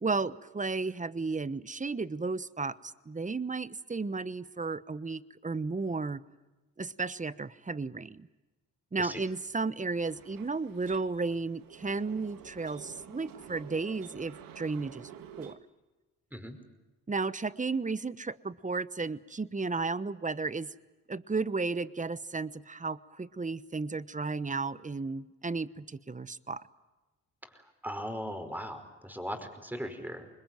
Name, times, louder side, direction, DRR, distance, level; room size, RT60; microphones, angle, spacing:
voice 1, 0.0-6.2 6.8-8.3 8.9-15.1 15.4-15.6 17.1-20.7 21.1-26.6, right 4 dB, 20° right, 17 dB, 1.0 m, -33 dB
sound 1, 9.9-15.5, right 9 dB, 90° right, 1.7 m, -50 dB
voice 2, 27.4-30.3, equal, 5° right, 7 dB, 5.1 m, -39 dB
25.5 x 21.5 x 9.2 m, 1.1 s
supercardioid pair, 60°, 33 cm